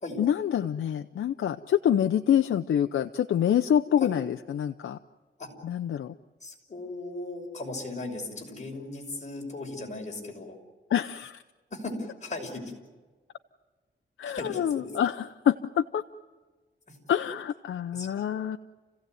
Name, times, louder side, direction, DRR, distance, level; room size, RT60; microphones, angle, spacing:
voice 1, 0.2-5.0 5.6-6.1 10.9-11.4 14.2-16.0 17.1-18.6, left 9 dB, 90° left, 8 dB, 0.7 m, -26 dB
voice 2, 6.4-10.6 11.7-11.9 12.2-12.6 14.2-14.9 18.0-18.2, left 2 dB, 35° left, 1 dB, 6.0 m, -37 dB
29.5 x 16.5 x 9.3 m, 1.3 s
wide cardioid pair, 95°, 20 cm